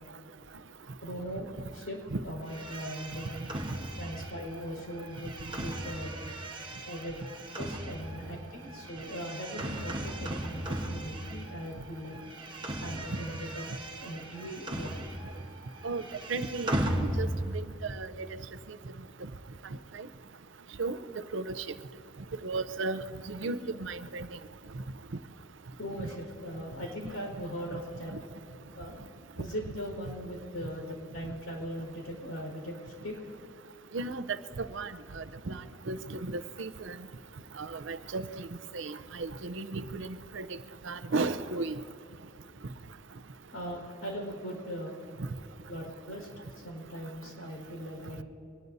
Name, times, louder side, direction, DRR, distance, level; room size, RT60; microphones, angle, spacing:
voice 1, 1.0-3.5 4.0-6.1 6.9-7.2 7.6-12.2 12.8-13.6 13.9-14.9 25.8-28.1 28.7-29.0 29.4-32.7 33.0-33.2 43.5-45.0 45.7-46.3 46.5-48.2, equal, 90° left, 0 dB, 4.7 m, -39 dB
sound 1, 2.5-11.8 12.0-15.5 15.7-17.6, right 1 dB, 25° right, 1.1 m, -37 dB
voice 2, 16.3-16.7 17.0-18.4 19.9-20.1 20.8-21.0 21.3-21.6 22.4-24.3 33.9-34.2 34.6-35.6 35.9-37.0 37.6-38.3 38.7-40.5 40.8-41.8, right 3 dB, 65° right, 13 dB, 0.6 m, -35 dB
24.0 x 19.5 x 2.7 m, 2.8 s
head